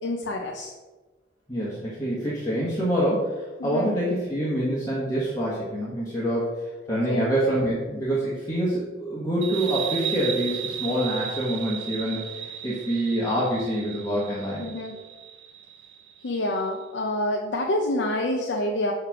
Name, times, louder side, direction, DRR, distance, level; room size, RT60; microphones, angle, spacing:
voice 1, 0.0-0.7 3.6-3.9 7.1-7.2 14.6-14.9 16.2-18.9, left 1 dB, 85° left, 1 dB, 0.7 m, -27 dB
voice 2, 1.5-6.5 6.9-14.6, right 1 dB, 20° left, -7 dB, 1.3 m, -26 dB
sound 1, 9.4-16.6, right 9 dB, 70° right, 0.5 m, -35 dB
6.6 x 3.2 x 5.9 m, 1.2 s
head